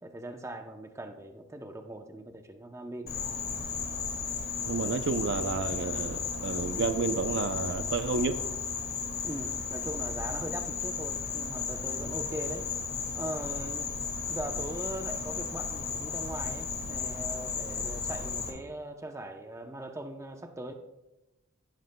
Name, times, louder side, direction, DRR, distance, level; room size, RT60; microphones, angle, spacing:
voice 1, 0.0-3.3 9.2-12.7 13.1-13.9 14.3-20.7, right 1 dB, 15° right, 6 dB, 0.7 m, -40 dB
Insect, 3.1-18.5, left 5 dB, 50° left, 1.7 m, -34 dB
voice 2, 4.7-8.4, right 4 dB, 55° right, 10 dB, 0.5 m, -30 dB
15.0 x 11.5 x 2.2 m, 0.97 s
head